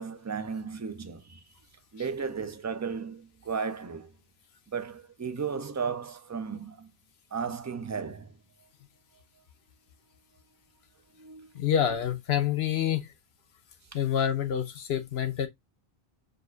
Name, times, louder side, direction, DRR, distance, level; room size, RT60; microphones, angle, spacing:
voice 1, 0.0-1.4 1.9-4.1 4.7-6.9 7.3-8.4 11.2-11.5, right 5 dB, 30° right, 0.3 m, -35 dB
voice 2, 11.5-13.1 13.9-15.5, left 9 dB, 85° left, 1.0 m, -27 dB
6.3 x 2.4 x 2.4 m
omnidirectional pair, 1.0 m